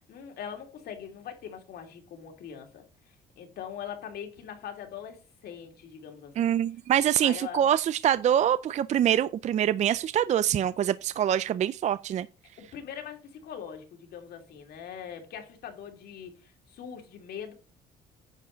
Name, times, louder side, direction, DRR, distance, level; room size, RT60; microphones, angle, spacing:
voice 1, 0.0-2.8 3.4-6.6 7.2-7.7 12.7-17.5, left 8 dB, 65° left, 2.9 m, -42 dB
voice 2, 6.4-12.3, right 10 dB, 45° right, 0.4 m, -25 dB
10.0 x 6.9 x 4.0 m
cardioid pair, 110°, 17 cm